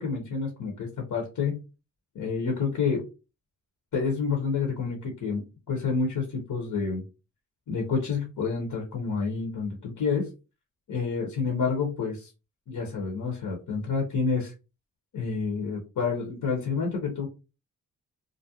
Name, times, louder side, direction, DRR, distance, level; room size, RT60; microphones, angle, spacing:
voice 1, 0.0-1.6 2.1-3.0 3.9-5.4 5.7-7.0 7.7-10.3 10.9-12.3 12.7-14.5 15.1-17.3, left 5 dB, 60° left, 0 dB, 0.9 m, -28 dB
2.5 x 2.1 x 2.8 m, 0.29 s
supercardioid pair, 50°, 37 cm